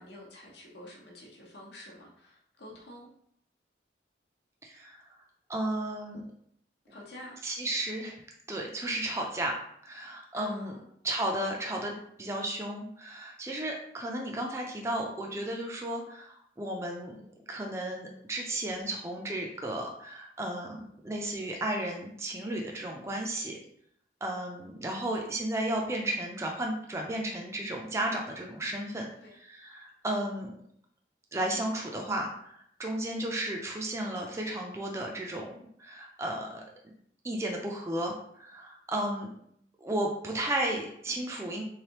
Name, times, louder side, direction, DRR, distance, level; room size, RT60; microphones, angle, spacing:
voice 1, 0.0-3.1 6.9-7.4 10.3-10.9 29.2-29.4, left 1 dB, 65° left, -2 dB, 0.9 m, -48 dB
voice 2, 4.6-5.0 5.5-6.3 7.4-8.2 8.5-9.6 9.8-10.8 11.0-17.2 17.5-23.6 24.2-30.5 31.3-36.6 37.2-39.3 39.8-41.6, right 1 dB, 15° right, 0 dB, 0.4 m, -34 dB
3.5 x 3.2 x 2.9 m, 0.68 s
head